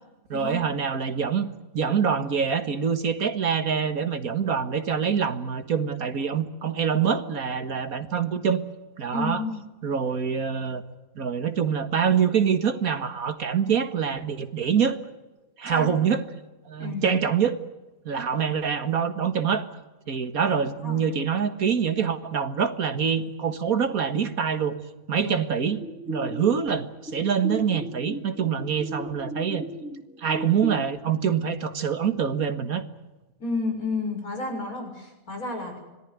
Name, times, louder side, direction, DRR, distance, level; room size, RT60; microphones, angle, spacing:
voice 1, 0.3-1.5 1.7-8.6 9.0-9.4 9.8-10.8 11.2-15.0 15.6-16.2 16.7-17.6 18.1-19.6 20.1-24.8 25.1-29.6 30.2-32.8, right 7 dB, 80° right, 10 dB, 2.1 m, -25 dB
voice 2, 9.1-9.5 15.7-15.9 16.8-17.1 20.5-21.0 25.2-25.3 33.4-35.8, left 3 dB, 75° left, 3 dB, 6.7 m, -31 dB
sound 1, 25.8-30.8, equal, 5° right, 2.9 m, -36 dB
25.5 x 18.5 x 9.4 m, 1.1 s
omnidirectional pair, 1.5 m